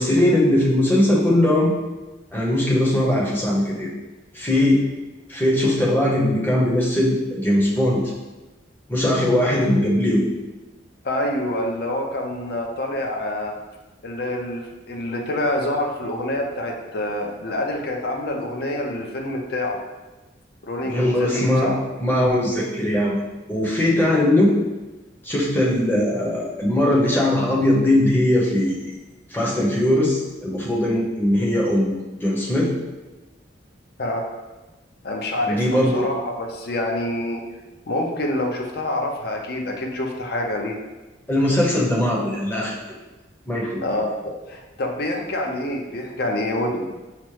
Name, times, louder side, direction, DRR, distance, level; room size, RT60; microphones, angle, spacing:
voice 1, 0.0-1.7 2.3-3.9 4.3-4.8 5.3-8.0 8.9-10.3 20.8-21.7 22.0-23.2 23.5-24.5 25.2-28.9 29.3-32.7 35.4-36.1 41.3-42.8 43.5-43.8, left 1 dB, 10° left, -5 dB, 0.7 m, -20 dB
voice 2, 11.0-13.5 14.0-19.8 20.6-21.8 34.0-34.3 35.0-37.4 37.9-40.8 43.8-44.1 44.5-46.8, left 1 dB, 55° left, 1 dB, 0.5 m, -26 dB
5.7 x 2.0 x 3.1 m, 1.1 s
head